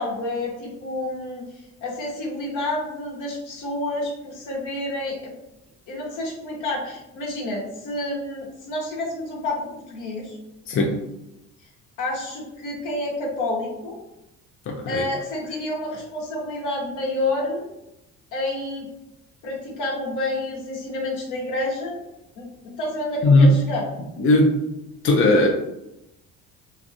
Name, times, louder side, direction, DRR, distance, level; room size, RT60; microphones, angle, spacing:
voice 1, 0.0-1.5 1.8-5.3 5.9-10.4 12.0-14.0 14.9-17.7 18.3-18.9 19.4-22.0 22.3-23.8, left 2 dB, 70° left, -3 dB, 1.1 m, -29 dB
voice 2, 10.7-11.0 14.7-15.0 23.2-23.5 24.2-24.6 25.0-25.5, left 2 dB, 40° left, 1 dB, 0.5 m, -17 dB
2.8 x 2.4 x 2.5 m, 0.91 s
supercardioid pair, 80°, 32 cm